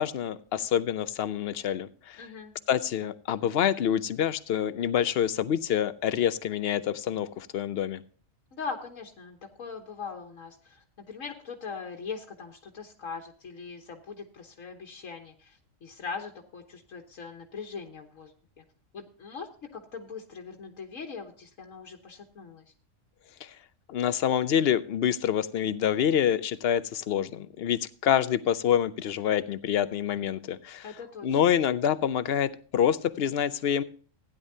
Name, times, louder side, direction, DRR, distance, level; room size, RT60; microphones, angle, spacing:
voice 1, 0.0-2.2 2.7-8.0 23.4-23.5 23.9-30.9 31.2-33.8, left 9 dB, 60° left, 15 dB, 0.8 m, -27 dB
voice 2, 2.2-2.5 8.5-18.6 18.9-22.6 30.8-31.4, left 5 dB, 85° left, 3 dB, 1.6 m, -41 dB
16.0 x 10.0 x 2.7 m, 0.42 s
omnidirectional pair, 1.3 m